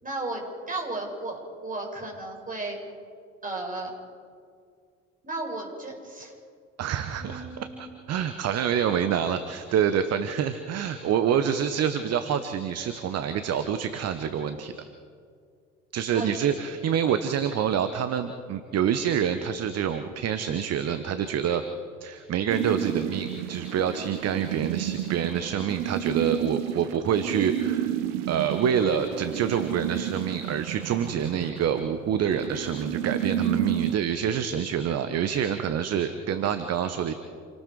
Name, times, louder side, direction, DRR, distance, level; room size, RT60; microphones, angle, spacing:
voice 1, 0.0-2.8 3.4-3.9 5.2-6.3 7.2-7.9 16.1-16.3, right 2 dB, 20° right, 0 dB, 6.4 m, -34 dB
voice 2, 6.8-14.7 15.9-21.6 22.0-28.0 28.3-37.1, right 8 dB, 40° right, 9 dB, 1.2 m, -27 dB
addsynth stereo fuzz, 22.5-34.0, right 10 dB, 60° right, 1.4 m, -31 dB
28.0 x 19.0 x 4.9 m, 2.2 s
figure-of-eight pair, 60°, 38 cm